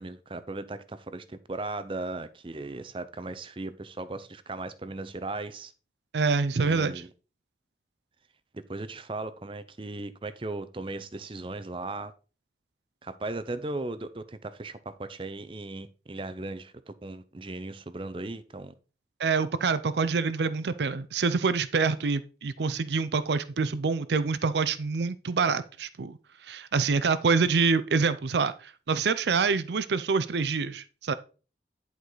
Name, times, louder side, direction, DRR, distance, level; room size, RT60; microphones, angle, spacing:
voice 1, 0.0-5.7 6.6-7.1 8.5-12.1 13.0-18.7, right 2 dB, 30° right, 0.6 m, -37 dB
voice 2, 6.1-7.0 19.2-26.2 26.4-31.1, right 4 dB, 75° right, 0.5 m, -26 dB
10.5 x 4.8 x 3.9 m
head